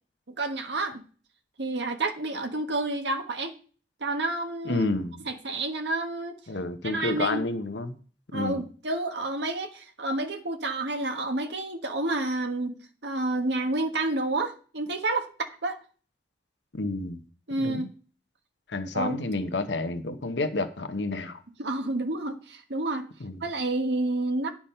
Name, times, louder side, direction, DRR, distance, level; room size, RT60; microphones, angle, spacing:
voice 1, 0.3-1.0 1.6-3.5 4.0-4.9 5.2-6.4 6.8-7.4 8.3-12.8 13.0-15.3 15.6-15.8 17.5-17.9 18.9-19.2 21.6-23.1 23.4-24.5, right 2 dB, 75° right, 1.3 m, -29 dB
voice 2, 4.6-5.2 6.5-7.9 8.3-8.6 16.7-17.2 17.6-17.9 18.7-21.4 23.2-23.3, left 2 dB, 75° left, 1.0 m, -30 dB
10.5 x 5.9 x 5.5 m
head